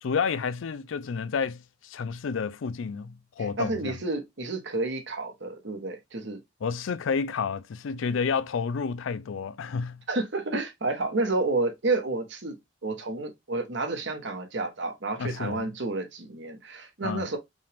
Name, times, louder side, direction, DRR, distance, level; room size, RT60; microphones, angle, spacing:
voice 1, 0.0-4.0 6.6-10.0 15.2-15.7 17.0-17.3, left 5 dB, 85° left, 0.4 m, -30 dB
voice 2, 3.4-6.4 10.1-17.4, right 2 dB, 70° right, 1.2 m, -30 dB
5.3 x 2.5 x 3.4 m
head